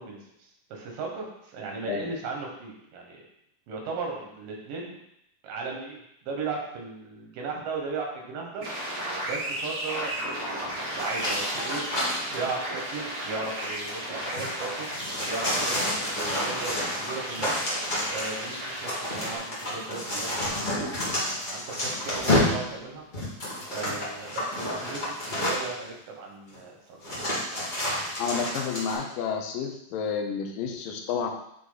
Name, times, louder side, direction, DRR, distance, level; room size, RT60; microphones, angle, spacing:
voice 1, 0.0-3.2 3.7-5.0 5.4-8.6 9.2-11.8 12.3-14.9 15.2-16.7 17.0-17.6 18.1-23.0 23.7-27.0, right 4 dB, 85° right, 0 dB, 3.0 m, -36 dB
sound 1, 8.6-19.4, right 1 dB, 60° right, 3.4 m, -34 dB
sound 2, 11.0-12.4 13.4-25.8 26.5-26.6 27.0-28.9, left 1 dB, 30° left, 0.8 m, -30 dB
voice 2, 28.2-31.3, left 6 dB, 85° left, 3 dB, 2.5 m, -30 dB
8.4 x 3.5 x 4.0 m, 0.77 s
omnidirectional pair, 3.9 m